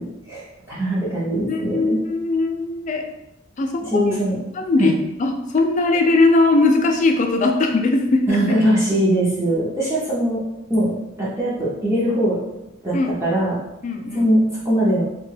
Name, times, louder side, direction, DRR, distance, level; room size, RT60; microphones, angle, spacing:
voice 1, 0.0-2.0 3.8-4.4 4.8-4.9 8.3-10.4 10.7-12.4 12.8-13.6 14.1-15.0, right 1 dB, 15° right, -9 dB, 0.6 m, -21 dB
voice 2, 1.5-3.0 3.6-4.2 4.5-8.4 12.9-13.1 13.8-14.3, left 2 dB, 35° left, 4 dB, 0.3 m, -19 dB
2.8 x 2.2 x 3.2 m, 0.90 s
head